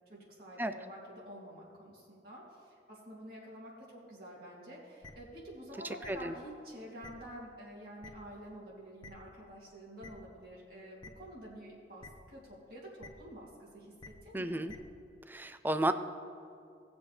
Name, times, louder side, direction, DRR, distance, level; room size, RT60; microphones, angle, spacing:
voice 1, 0.1-14.6, equal, 55° right, -4 dB, 2.8 m, -49 dB
sound 1, 5.0-5.1 6.0-6.1 7.0-7.1 8.0-8.1 9.0-9.1 10.0-10.1 11.0-11.1 12.0-12.1 13.0-13.1 14.0-14.1 14.7-14.8, left 3 dB, 25° left, 0.9 m, -48 dB
voice 2, 14.3-14.7 15.3-15.9, right 1 dB, 10° right, 10 dB, 0.4 m, -32 dB
18.5 x 7.1 x 3.4 m, 2.5 s
head